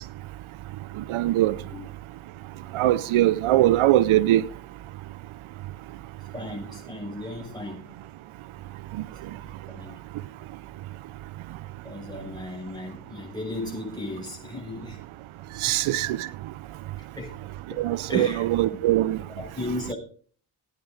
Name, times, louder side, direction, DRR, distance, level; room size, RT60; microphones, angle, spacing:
voice 1, 1.1-1.5 2.7-4.4 15.6-16.3 17.8-19.2, right 14 dB, 80° right, 0.6 m, -21 dB
voice 2, 6.3-7.8 9.4-10.0 11.8-15.0 15.7-15.8 17.2-17.4 17.7-18.4 19.4-19.9, left 1 dB, 10° left, 6.0 m, -35 dB
16.0 x 9.2 x 3.8 m
supercardioid pair, 40°, 48 cm